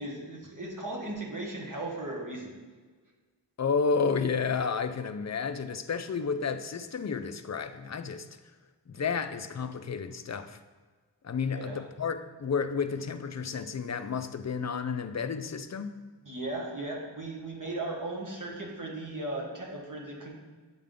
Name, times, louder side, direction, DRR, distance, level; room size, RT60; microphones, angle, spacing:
voice 1, 0.0-2.6 11.5-11.9 16.2-20.3, right 2 dB, 45° right, -3 dB, 1.5 m, -37 dB
voice 2, 3.6-8.3 8.9-10.6 11.2-16.0, left 5 dB, 40° left, 10 dB, 0.4 m, -31 dB
8.4 x 3.6 x 3.6 m, 1.4 s
wide cardioid pair, 45°, 45 cm